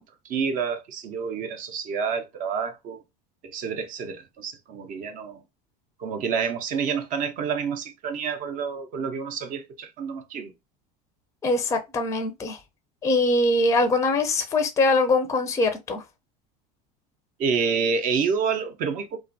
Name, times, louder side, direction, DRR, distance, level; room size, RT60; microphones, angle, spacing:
voice 1, 0.0-3.0 3.4-5.4 6.0-10.5 17.4-19.2, right 6 dB, 45° right, 0.5 m, -28 dB
voice 2, 11.4-12.6 13.0-16.0, left 2 dB, 15° left, 0.4 m, -22 dB
2.3 x 2.2 x 2.4 m
supercardioid pair, 120°, 20 cm